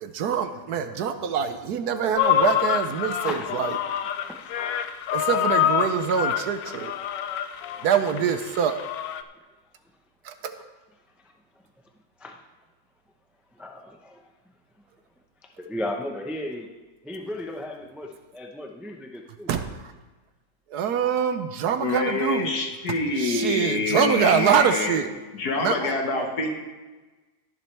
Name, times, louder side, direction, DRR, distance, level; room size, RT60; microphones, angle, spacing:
voice 1, 0.0-3.7 5.1-6.9 7.8-8.8 10.2-10.5 19.5-19.6 20.7-22.5 23.2-25.1 25.6-25.7, right 7 dB, 70° right, 9 dB, 1.2 m, -24 dB
sound 1, 2.2-9.2, left 10 dB, 85° left, 1.3 m, -26 dB
voice 2, 3.2-3.6 4.3-4.5 7.5-7.9 8.6-8.7 9.3-9.5 10.5-10.6 11.2-11.9 12.2-12.4 13.5-14.3 14.7-14.8 15.4-16.7 17.0-19.6 25.8-26.3, left 1 dB, ahead, 2 dB, 0.3 m, -37 dB
voice 3, 21.8-25.0 25.3-26.5, left 3 dB, 65° left, 2 dB, 2.0 m, -26 dB
18.0 x 7.3 x 3.3 m, 1.2 s
omnidirectional pair, 1.9 m